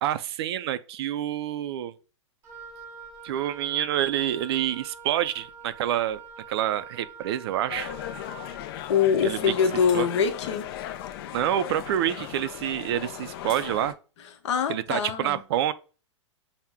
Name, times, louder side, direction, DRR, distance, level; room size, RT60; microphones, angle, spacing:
voice 1, 0.0-1.9 3.2-6.2 6.5-7.9 9.2-9.4 9.9-10.1 11.3-13.9 14.7-15.7, right 11 dB, 55° right, 0.4 m, -27 dB
Wind instrument woodwind instrument, 2.4-8.7, right 5 dB, 20° right, 0.7 m, -45 dB
sound 1, 7.7-13.9, left 11 dB, 50° left, 0.4 m, -37 dB
voice 2, 8.9-10.7 14.4-15.4, left 7 dB, 65° left, 0.9 m, -24 dB
sound 2, 9.4-9.5 9.9-10.0 13.0-13.7, left 6 dB, 30° left, 0.9 m, -45 dB
5.8 x 2.1 x 3.5 m
hypercardioid pair, 145°, 16 cm